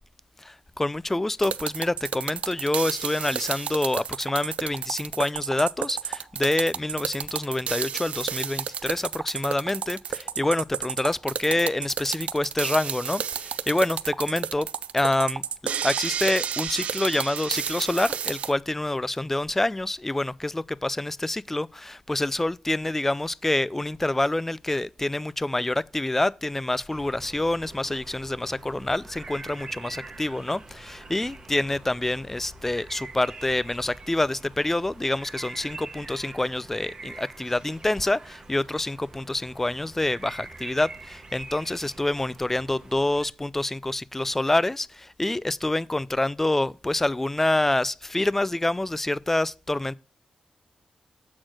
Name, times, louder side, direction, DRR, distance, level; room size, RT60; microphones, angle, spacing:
voice 1, 0.4-14.7 14.9-50.0, left 2 dB, 15° left, 0.3 m, -27 dB
sound 1, 1.4-18.5, right 8 dB, 80° right, 0.4 m, -31 dB
sound 2, 26.9-43.3, right 3 dB, 40° right, 1.1 m, -44 dB
7.9 x 4.2 x 6.1 m
cardioid pair, 90°, 2 cm